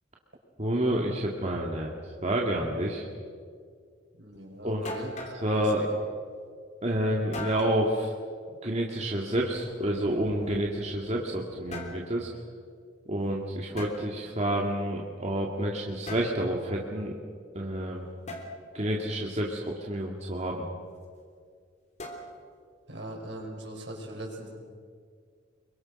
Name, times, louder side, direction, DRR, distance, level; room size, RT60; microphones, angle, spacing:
voice 1, 0.6-1.9 2.2-3.0 4.6-5.0 5.4-5.8 6.8-8.1 8.6-12.3 13.1-17.1 17.5-18.1 18.7-20.7, right 1 dB, 35° right, -2 dB, 2.1 m, -29 dB
voice 2, 4.2-5.1 5.4-5.7 22.9-24.5, right 1 dB, 75° right, 0 dB, 5.8 m, -40 dB
sound 1, 4.4-4.5 4.9-5.4 7.3-7.8 9.5-10.9 11.5-12.0 13.8-14.0 16.1-16.4 18.3-18.5 22.0-22.5, left 2 dB, 40° left, 3.5 m, -40 dB
26.5 x 23.5 x 6.5 m, 2.1 s
head